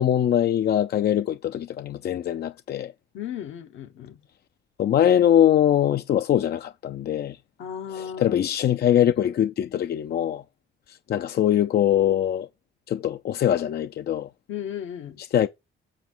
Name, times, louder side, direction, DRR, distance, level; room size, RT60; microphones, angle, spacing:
voice 1, 0.0-2.9 4.8-7.4 7.9-10.4 10.9-12.5 12.9-14.3 15.3-15.5, left 10 dB, 55° left, 0.5 m, -22 dB
voice 2, 3.1-4.2 7.6-8.4 14.5-15.2, left 9 dB, 80° left, 1.2 m, -35 dB
7.2 x 7.2 x 4.5 m
cardioid pair, 90°, 20 cm